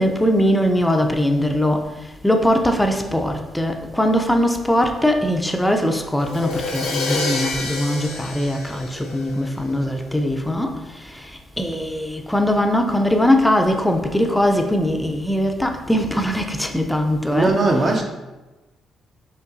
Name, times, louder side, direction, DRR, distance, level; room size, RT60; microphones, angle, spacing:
voice 1, 0.0-1.9 2.2-10.7 11.6-17.5, equal, 5° left, 0.4 m, -20 dB
Crash cymbal, 6.2-10.0, left 3 dB, 90° left, 0.7 m, -28 dB
voice 2, 17.3-18.0, right 2 dB, 45° right, 0.7 m, -18 dB
5.3 x 3.1 x 2.6 m
cardioid pair, 90°, 0 cm